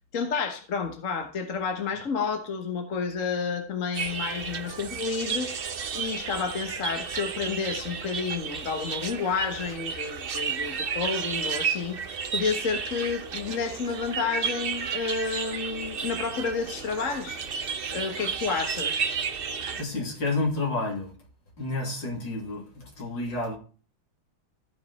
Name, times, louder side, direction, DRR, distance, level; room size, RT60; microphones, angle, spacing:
voice 1, 0.1-5.5 5.9-12.0 12.3-17.4 17.9-19.1, left 5 dB, 45° left, 1.3 m, -30 dB
sound 1, 3.9-19.8, right 6 dB, 85° right, 0.5 m, -32 dB
voice 2, 19.7-21.1 21.6-23.6, left 2 dB, 60° left, 3.7 m, -30 dB
14.0 x 5.3 x 4.1 m
omnidirectional pair, 2.3 m